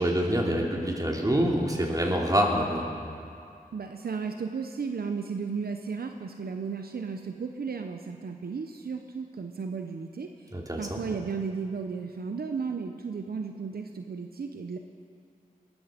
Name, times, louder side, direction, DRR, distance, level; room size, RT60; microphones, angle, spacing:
voice 1, 0.0-2.9 10.5-11.0, equal, 25° right, -1 dB, 2.9 m, -26 dB
voice 2, 3.7-10.3 10.8-14.8, right 5 dB, 75° right, 5 dB, 0.8 m, -34 dB
20.0 x 13.5 x 5.1 m, 2.5 s
cardioid pair, 50°, 16 cm